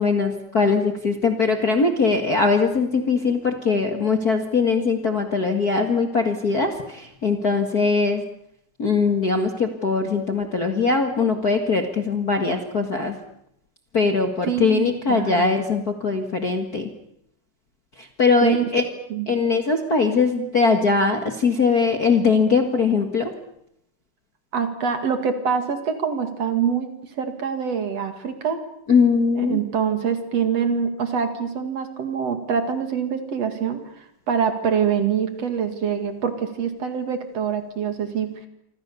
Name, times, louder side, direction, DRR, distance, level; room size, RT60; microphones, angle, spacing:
voice 1, 0.0-8.2 8.8-13.2 13.9-16.9 18.0-18.8 19.3-23.3 28.9-29.6, left 4 dB, 35° left, 5 dB, 1.7 m, -21 dB
voice 2, 14.4-15.5 18.4-18.6 19.1-19.3 24.5-26.9 27.2-28.6 29.5-38.5, right 7 dB, 55° right, 7 dB, 3.2 m, -25 dB
27.0 x 26.0 x 7.0 m, 0.75 s
omnidirectional pair, 3.7 m